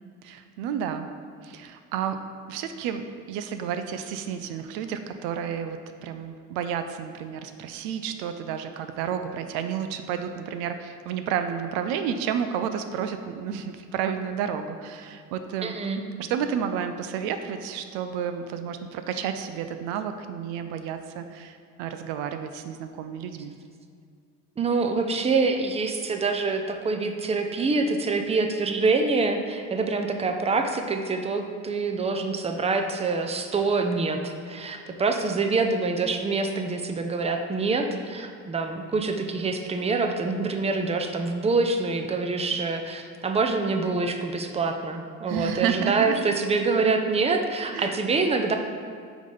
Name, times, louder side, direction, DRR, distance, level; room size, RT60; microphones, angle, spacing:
voice 1, 0.2-1.1 1.4-2.2 2.5-15.8 16.2-23.5 45.3-46.3 47.7-47.9, right 8 dB, 85° right, 8 dB, 0.5 m, -31 dB
voice 2, 15.6-16.0 24.6-48.5, right 3 dB, 20° right, 5 dB, 0.5 m, -26 dB
5.0 x 3.9 x 5.3 m, 2.2 s
supercardioid pair, 80°, 35 cm